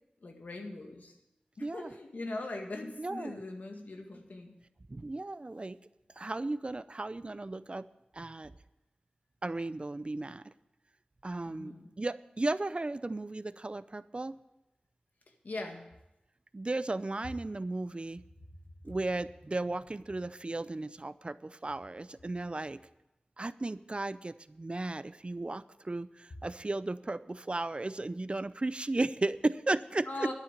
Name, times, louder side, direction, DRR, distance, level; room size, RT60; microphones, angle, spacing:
voice 1, 0.2-1.1 1.6-4.5 11.5-11.9 15.4-15.9 30.1-30.3, left 2 dB, 80° left, 3 dB, 1.9 m, -40 dB
voice 2, 1.6-1.9 3.0-3.4 4.9-5.8 6.2-7.9 8.1-8.5 9.4-10.5 11.2-14.3 16.5-18.2 18.8-22.8 23.4-30.3, right 2 dB, 40° right, 15 dB, 0.5 m, -35 dB
11.5 x 7.0 x 9.1 m, 0.92 s
wide cardioid pair, 55°, 3 cm